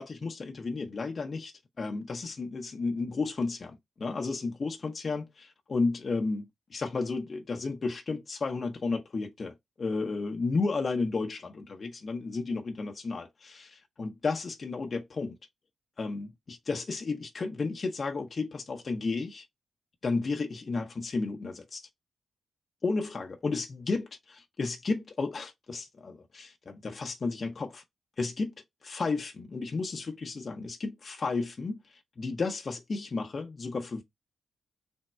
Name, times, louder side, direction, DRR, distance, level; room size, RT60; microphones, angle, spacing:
voice 1, 0.0-15.4 16.0-19.4 20.0-21.8 22.8-27.8 28.2-28.5 28.8-31.8 32.2-34.0, left 3 dB, 50° left, 0.7 m, -33 dB
3.5 x 2.1 x 4.2 m
cardioid pair, 60°, 0 cm